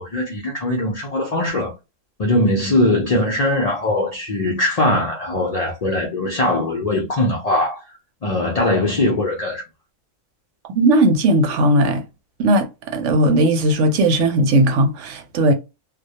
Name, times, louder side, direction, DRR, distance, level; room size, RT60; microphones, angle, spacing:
voice 1, 0.0-1.7 2.2-7.8 8.2-9.6, left 1 dB, 60° left, 0.4 m, -20 dB
voice 2, 10.7-12.0 12.4-12.7 12.9-15.5, right 1 dB, 75° right, 0.9 m, -17 dB
2.2 x 2.1 x 2.7 m
omnidirectional pair, 1.3 m